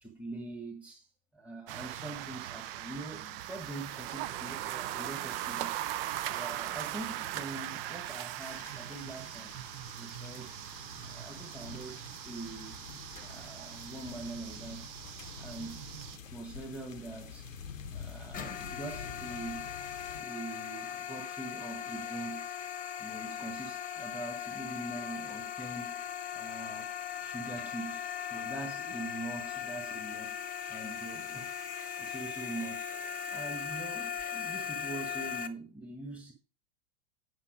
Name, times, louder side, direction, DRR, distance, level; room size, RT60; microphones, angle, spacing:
voice 1, 0.0-5.8 6.2-9.5 10.0-10.7 11.0-12.8 13.2-15.9 16.3-17.5 17.9-19.8 20.1-22.5 22.9-26.0 26.3-26.9 27.2-30.4 30.7-32.9 33.2-36.3, right 2 dB, 5° right, 1.5 m, -43 dB
sound 1, 1.7-16.2, right 13 dB, 50° right, 0.6 m, -40 dB
sound 2, 8.4-20.2, left 6 dB, 90° left, 0.9 m, -48 dB
sound 3, 18.3-35.5, left 8 dB, 20° left, 1.0 m, -39 dB
9.0 x 5.7 x 5.0 m
figure-of-eight pair, 90°, 38 cm